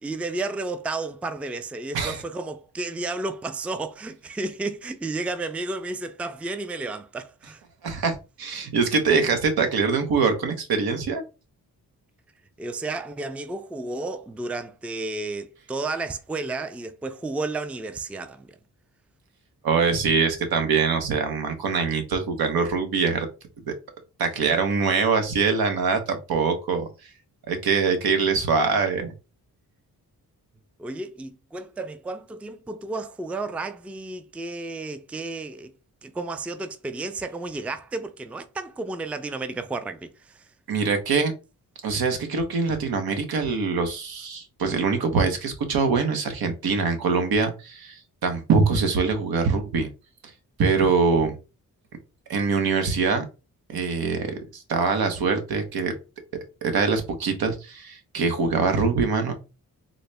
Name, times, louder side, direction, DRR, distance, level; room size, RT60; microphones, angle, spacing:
voice 1, 0.0-7.6 12.6-18.6 30.8-35.7 36.0-40.5, right 3 dB, 5° right, 0.3 m, -32 dB
voice 2, 7.8-11.2 19.6-23.3 23.7-23.8 24.2-26.9 27.5-29.1 40.7-41.3 41.8-49.9 50.6-51.4 52.3-53.2 53.7-55.9 56.6-59.3, right 5 dB, 80° right, 0.9 m, -23 dB
3.9 x 2.1 x 3.3 m
cardioid pair, 70°, 37 cm